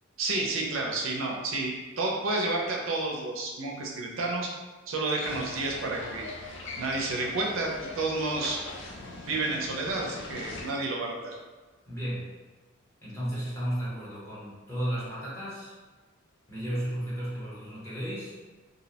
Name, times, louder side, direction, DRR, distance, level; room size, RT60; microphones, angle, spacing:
voice 1, 0.2-4.5 4.9-6.3 6.8-8.6 9.3-11.4, right 2 dB, 70° right, -1 dB, 0.4 m, -30 dB
sound 1, 5.2-10.7, left 2 dB, 60° left, 0.4 m, -41 dB
voice 2, 11.9-12.3 13.0-15.7 16.5-18.3, equal, 15° left, -9 dB, 0.8 m, -34 dB
2.6 x 2.0 x 2.7 m, 1.3 s
head